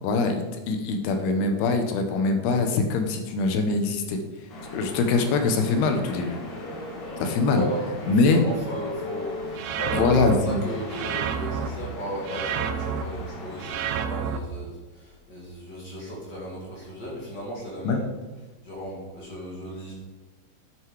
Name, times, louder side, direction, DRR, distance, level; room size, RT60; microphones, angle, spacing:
voice 1, 0.0-4.2 4.7-6.4 7.2-7.6 8.1-8.4 9.9-10.6 17.8-18.0, left 3 dB, 80° left, 5 dB, 3.0 m, -23 dB
sound 1, 4.5-13.7, left 2 dB, 55° left, 3.3 m, -38 dB
voice 2, 7.4-18.1 18.6-19.9, equal, 35° left, -3 dB, 1.9 m, -35 dB
sound 2, 9.6-10.3 10.9-11.7 12.3-13.0 13.6-14.4, right 8 dB, 85° right, 2.6 m, -29 dB
8.9 x 7.8 x 4.8 m, 1.2 s
omnidirectional pair, 4.6 m